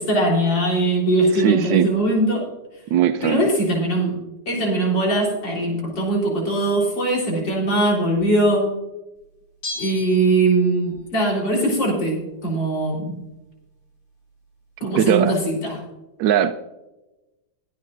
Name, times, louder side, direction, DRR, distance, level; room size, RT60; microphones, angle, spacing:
voice 1, 0.0-2.5 3.2-8.8 9.8-13.1 14.8-15.8, right 2 dB, 80° left, -3 dB, 4.6 m, -21 dB
voice 2, 1.3-1.9 2.9-3.5 14.8-15.3 16.2-16.5, right 10 dB, 90° right, 8 dB, 1.3 m, -19 dB
Bell, 9.6-11.0 11.3-11.4, left 2 dB, 65° left, 3.6 m, -35 dB
22.0 x 9.4 x 2.6 m, 1.0 s
omnidirectional pair, 2.0 m